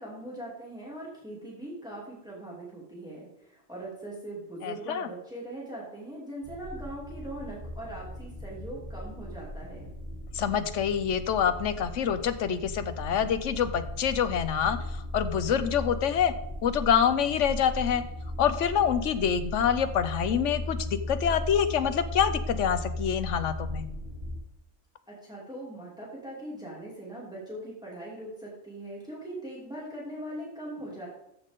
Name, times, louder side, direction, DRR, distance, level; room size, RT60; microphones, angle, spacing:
voice 1, 0.0-9.9 25.1-31.1, right 1 dB, 5° right, -5 dB, 2.9 m, -41 dB
voice 2, 4.6-5.1 10.3-16.3 16.6-18.0 18.4-23.9, left 8 dB, 85° left, 12 dB, 1.1 m, -26 dB
sound 1, 6.4-24.4, left 1 dB, 40° right, 1.9 m, -37 dB
14.0 x 6.6 x 3.7 m, 0.81 s
omnidirectional pair, 1.2 m